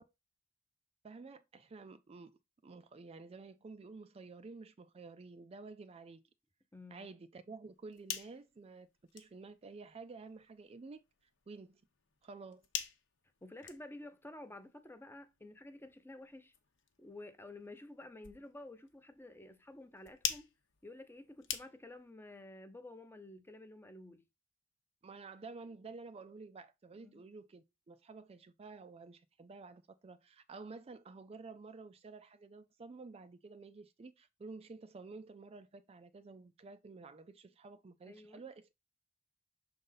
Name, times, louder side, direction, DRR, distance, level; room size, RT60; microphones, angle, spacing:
voice 1, 1.0-2.3 2.6-6.2 6.9-11.0 11.5-11.8 12.2-12.7 25.0-38.7, right 4 dB, 30° right, 0.4 m, -51 dB
voice 2, 6.7-7.1 13.4-16.5 17.0-20.5 20.8-24.3 27.0-27.2 38.1-38.4, left 2 dB, 10° left, 0.6 m, -51 dB
sound 1, 7.7-22.1, left 9 dB, 65° left, 0.9 m, -47 dB
6.4 x 3.9 x 3.9 m
head